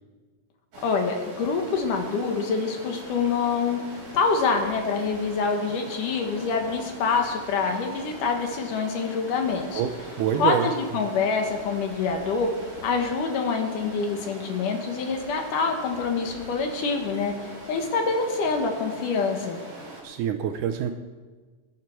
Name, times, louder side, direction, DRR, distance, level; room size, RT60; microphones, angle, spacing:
Stream, 0.7-20.0, right 2 dB, 50° right, 4.7 m, -42 dB
voice 1, 0.8-3.8 4.1-9.8 10.4-12.5 12.8-17.3 17.7-19.6, left 5 dB, 70° left, 3 dB, 2.8 m, -26 dB
voice 2, 10.2-10.7 20.0-20.9, right 9 dB, 75° right, 7 dB, 2.0 m, -25 dB
20.0 x 9.6 x 4.6 m, 1.4 s
omnidirectional pair, 4.1 m